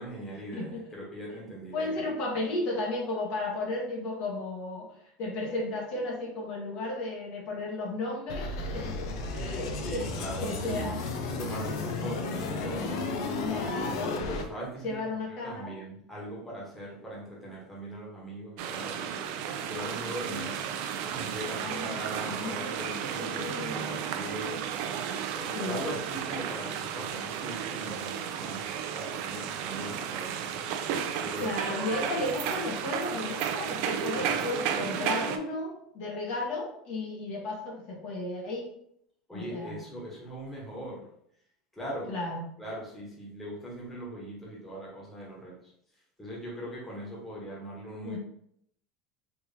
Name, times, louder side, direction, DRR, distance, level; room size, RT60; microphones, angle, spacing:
voice 1, 0.0-2.1 9.8-11.0 11.3-13.6 14.3-15.0 15.3-19.2 19.6-20.7 21.2-24.6 25.3-28.7 28.9-30.6 31.2-32.1 39.3-41.1 41.7-42.2 42.6-45.7 46.2-48.2, equal, 5° left, -5 dB, 1.1 m, -40 dB
voice 2, 0.5-0.8 1.3-1.4 1.7-4.9 5.2-10.1 10.4-10.9 13.4-14.2 14.8-15.7 21.6-23.8 25.5-25.9 31.4-38.7 39.3-39.8 42.1-42.5 48.0-48.2, left 2 dB, 50° left, -1 dB, 1.0 m, -34 dB
sound 1, 8.3-14.4, left 3 dB, 85° left, 0.5 m, -33 dB
sound 2, 18.6-35.4, right 8 dB, 60° right, 0.4 m, -33 dB
3.5 x 2.9 x 2.7 m, 0.69 s
supercardioid pair, 145°, 2 cm